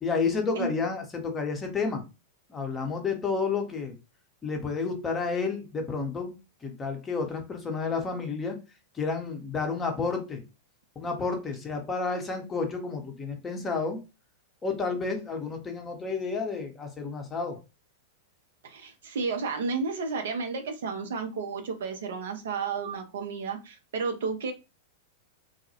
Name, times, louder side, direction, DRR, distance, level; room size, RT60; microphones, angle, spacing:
voice 1, 0.0-2.0 2.5-4.0 4.4-6.4 6.6-8.6 8.9-10.4 11.0-14.0 14.6-17.6, left 4 dB, 20° left, 0.7 m, -30 dB
voice 2, 18.6-24.5, right 4 dB, 60° right, 0.5 m, -32 dB
2.2 x 2.0 x 2.8 m
figure-of-eight pair, 95°, 0 cm